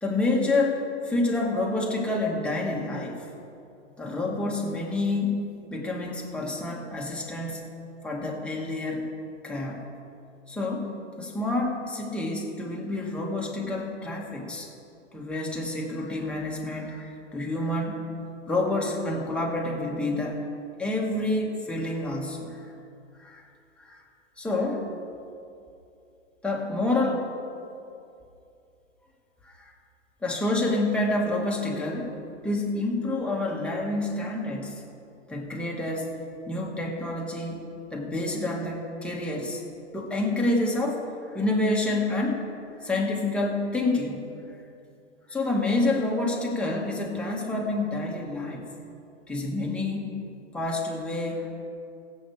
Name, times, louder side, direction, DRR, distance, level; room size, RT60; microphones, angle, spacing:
voice 1, 0.0-3.3 4.0-7.7 8.0-9.1 9.4-9.8 10.5-10.9 11.2-14.7 15.1-18.0 18.5-20.4 20.8-22.7 23.2-23.5 23.8-24.0 24.4-24.9 26.4-27.3 29.4-29.7 30.2-32.2 32.4-34.8 35.3-36.1 36.5-39.6 39.9-42.4 42.8-44.2 45.3-48.7 49.3-50.2 50.5-51.5, left 2 dB, 5° left, -3 dB, 2.0 m, -28 dB
21.5 x 8.0 x 3.5 m, 2.6 s
hypercardioid pair, 120°, 35 cm